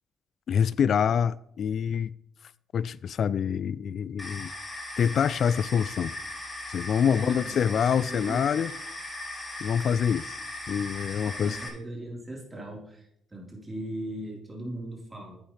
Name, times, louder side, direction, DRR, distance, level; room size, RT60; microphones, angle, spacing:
voice 1, 0.5-2.1 2.7-4.5 5.0-6.1 6.7-8.7 9.6-10.4 10.7-11.6, left 7 dB, 60° left, 0.3 m, -26 dB
sound 1, 4.2-11.7, left 2 dB, 20° left, 4.0 m, -38 dB
voice 2, 7.1-8.5 11.3-15.3, right 1 dB, 20° right, 4.1 m, -39 dB
11.0 x 8.5 x 3.3 m
supercardioid pair, 65°, 0 cm